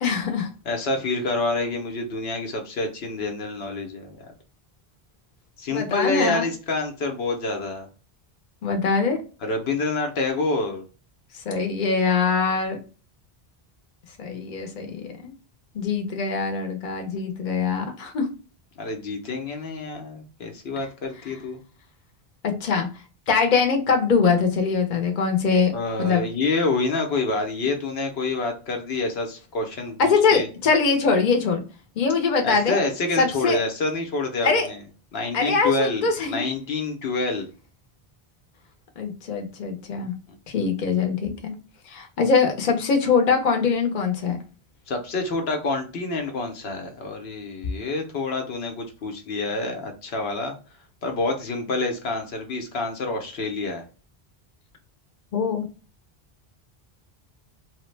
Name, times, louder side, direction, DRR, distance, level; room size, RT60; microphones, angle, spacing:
voice 1, 0.0-0.5 5.7-6.4 8.6-9.2 11.5-12.8 14.2-15.3 15.7-18.3 22.4-22.9 23.3-25.7 26.0-26.2 30.0-31.6 32.0-32.8 33.2-33.6 34.4-34.7 35.3-36.4 39.0-40.1 40.5-41.5 41.9-44.4 55.3-55.6, left 5 dB, 50° left, 3 dB, 0.8 m, -22 dB
voice 2, 0.7-4.3 5.6-7.9 9.4-10.8 18.8-21.6 25.7-30.5 32.4-34.8 35.1-37.5 40.3-40.4 44.9-50.5 51.0-53.8, left 3 dB, 80° left, 3 dB, 1.0 m, -27 dB
3.1 x 2.1 x 3.2 m, 0.35 s
omnidirectional pair, 1.0 m